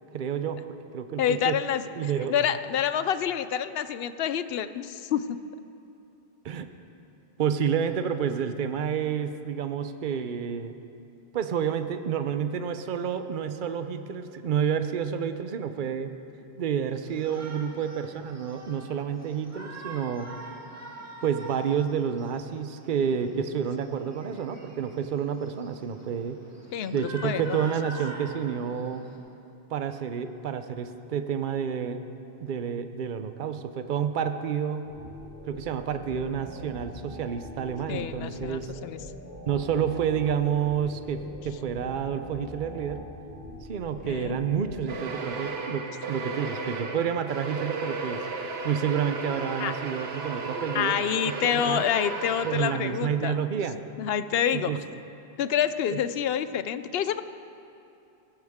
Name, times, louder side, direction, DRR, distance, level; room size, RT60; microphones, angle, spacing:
voice 1, 0.1-0.6 0.9-1.6 2.0-2.3 6.4-6.7 7.4-10.7 11.3-16.1 16.6-20.3 21.2-26.4 26.9-29.0 29.7-32.0 32.4-34.9 35.5-38.7 39.5-43.0 43.7-48.2 48.6-51.0 51.2-51.8 52.4-53.8 54.5-54.8, right 7 dB, 55° right, 9 dB, 0.8 m, -29 dB
voice 2, 1.2-5.4 23.4-23.5 26.7-27.6 37.9-39.0 44.0-44.4 49.6-49.7 50.7-53.4 54.0-54.7 55.4-57.2, left 9 dB, 75° left, 13 dB, 0.8 m, -28 dB
Shout, 17.0-29.2, right 1 dB, 15° right, 1.7 m, -45 dB
sound 1, 34.8-44.8, left 1 dB, 55° left, 4.1 m, -43 dB
sound 2, 44.9-53.2, right 3 dB, 75° right, 1.2 m, -34 dB
17.5 x 14.0 x 3.6 m, 2.7 s
omnidirectional pair, 1.1 m